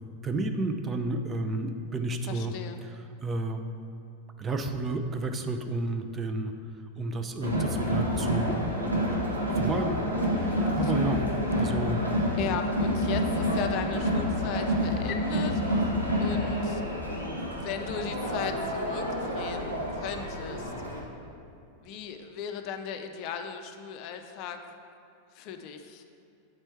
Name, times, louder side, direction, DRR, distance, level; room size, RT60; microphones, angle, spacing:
voice 1, 0.2-2.5 3.2-3.6 4.4-6.5 7.0-8.5 9.5-11.2 11.6-12.0, right 2 dB, 20° right, 6 dB, 0.5 m, -31 dB
voice 2, 2.3-2.8 10.8-10.9 12.4-15.6 16.2-16.8 17.5-20.7 21.8-24.6 25.3-26.0, left 7 dB, 45° left, 6 dB, 0.5 m, -36 dB
Crowd, 7.4-21.0, equal, 85° right, 1.1 m, -28 dB
7.9 x 4.3 x 4.5 m, 2.8 s
figure-of-eight pair, 90°, 0 cm